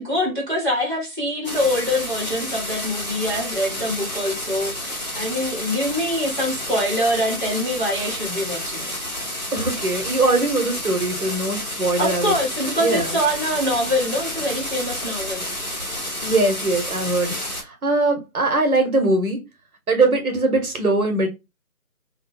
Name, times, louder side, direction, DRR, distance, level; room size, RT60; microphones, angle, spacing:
voice 1, 0.0-8.9 12.0-15.5, equal, 35° right, 1.0 m, -24 dB
sound 1, 1.4-17.6, left 1 dB, 30° left, 0.9 m, -30 dB
voice 2, 9.5-12.3 12.8-13.1 16.2-19.4 19.9-21.3, right 2 dB, 75° right, 1.0 m, -21 dB
2.2 x 2.1 x 2.9 m
figure-of-eight pair, 170°, 44 cm